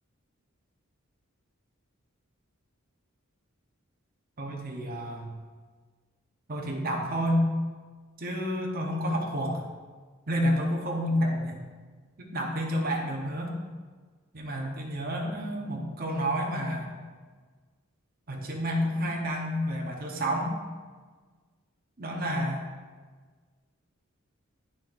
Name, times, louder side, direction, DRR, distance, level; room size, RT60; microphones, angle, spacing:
voice 1, 4.4-5.3 6.5-7.5 8.2-9.7 10.3-11.6 12.2-13.5 14.3-17.0 18.3-20.6 22.0-22.7, equal, 45° right, 0 dB, 1.0 m, -29 dB
9.1 x 6.6 x 2.6 m, 1.5 s
head